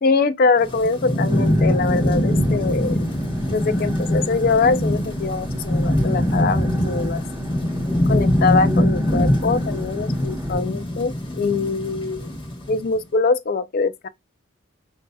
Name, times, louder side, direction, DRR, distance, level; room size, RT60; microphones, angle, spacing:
voice 1, 0.0-3.0 3.5-7.2 8.1-12.3 12.7-14.1, left 4 dB, 45° left, 0.4 m, -23 dB
Thunderstorm / Rain, 0.6-12.9, equal, 20° left, 1.1 m, -22 dB
sound 1, 1.3-10.6, equal, 15° right, 0.7 m, -35 dB
5.8 x 2.7 x 2.2 m
head